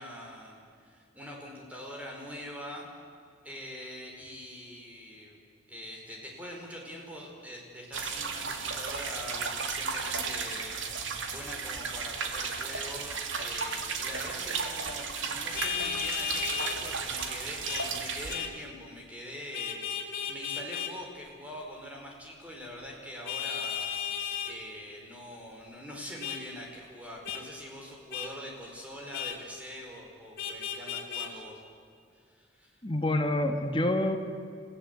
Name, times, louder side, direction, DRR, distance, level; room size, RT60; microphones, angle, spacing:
voice 1, 0.0-2.9 3.4-5.4 5.7-23.9 24.4-31.6 32.1-32.8, equal, 5° right, -1 dB, 4.7 m, -44 dB
sound 1, 7.9-18.4, right 5 dB, 85° right, 2.3 m, -34 dB
Vehicle horn car horn honking, 15.5-16.8 17.7-17.9 18.3-18.5 19.5-20.9 23.3-24.5 26.2-26.4 27.3-27.4 28.1-28.3 29.1-29.4 30.4-31.3, left 8 dB, 50° left, 2.5 m, -34 dB
voice 2, 32.8-34.2, left 1 dB, 25° left, 5 dB, 1.9 m, -27 dB
30.0 x 16.0 x 8.2 m, 2.3 s
head